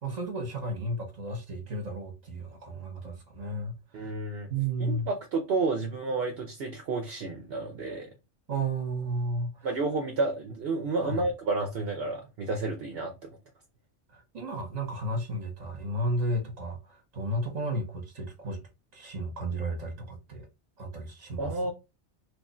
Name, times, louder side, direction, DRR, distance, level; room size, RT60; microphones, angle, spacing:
voice 1, 0.0-4.1 4.5-5.1 8.5-9.7 11.0-11.2 14.1-18.6 18.9-20.5 20.8-21.6, right 1 dB, 40° right, 1.1 m, -33 dB
voice 2, 3.9-4.5 4.8-8.1 9.6-13.4 21.4-21.7, right 3 dB, 65° right, 0.8 m, -31 dB
3.0 x 2.4 x 4.1 m
omnidirectional pair, 1.2 m